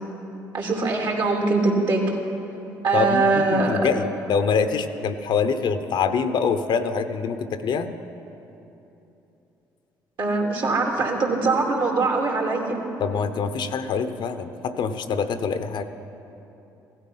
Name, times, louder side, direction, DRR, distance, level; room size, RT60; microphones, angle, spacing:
voice 1, 0.5-2.0 2.8-3.8 10.2-12.8, right 3 dB, 60° right, 0 dB, 2.9 m, -22 dB
voice 2, 2.9-7.9 13.0-15.8, left 5 dB, 60° left, 9 dB, 0.9 m, -25 dB
16.0 x 12.5 x 5.6 m, 3.0 s
hypercardioid pair, 60°, 9 cm